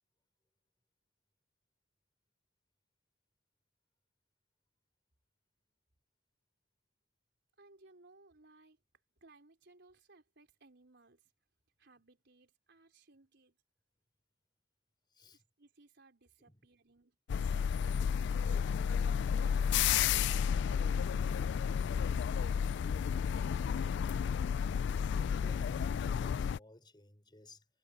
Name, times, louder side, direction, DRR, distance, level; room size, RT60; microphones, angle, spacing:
voice 1, 7.6-8.8 9.2-11.3 11.8-13.6 15.3-18.0 18.8-19.6 19.9-23.1, right 2 dB, 65° right, 4.5 m, -64 dB
voice 2, 15.1-15.4 16.4-16.7 25.4-27.7, left 2 dB, 25° left, 5.7 m, -58 dB
sound 1, 17.3-26.6, left 7 dB, 65° left, 0.3 m, -32 dB
head